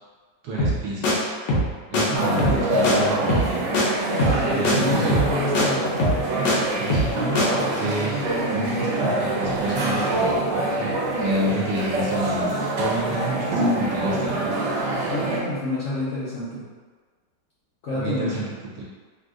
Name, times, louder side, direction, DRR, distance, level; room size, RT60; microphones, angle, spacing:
voice 1, 0.4-1.3 1.9-2.5 2.7-3.7 4.5-5.3 6.8-8.1 8.5-10.9 11.2-14.4 17.9-18.4 18.7-18.8, right 1 dB, 70° right, -6 dB, 1.1 m, -29 dB
sound 1, 0.6-0.8 1.0-1.1 1.5-1.7 1.9-2.0 2.4-2.6 2.8-2.9 3.3-3.5 3.7-3.9 4.2-4.4 4.6-4.8 5.1-5.3 5.5-5.7 6.0-6.6 6.9-7.1 7.4-7.5, left 1 dB, 80° left, 1.3 m, -21 dB
voice 2, 2.1-2.8 4.1-6.0 8.2-8.5 15.1-16.6 17.8-18.5, left 1 dB, 60° left, -10 dB, 0.8 m, -28 dB
sound 2, 2.1-15.4, right 1 dB, 90° right, 1.3 m, -25 dB
3.3 x 2.6 x 2.4 m, 1.5 s
omnidirectional pair, 1.9 m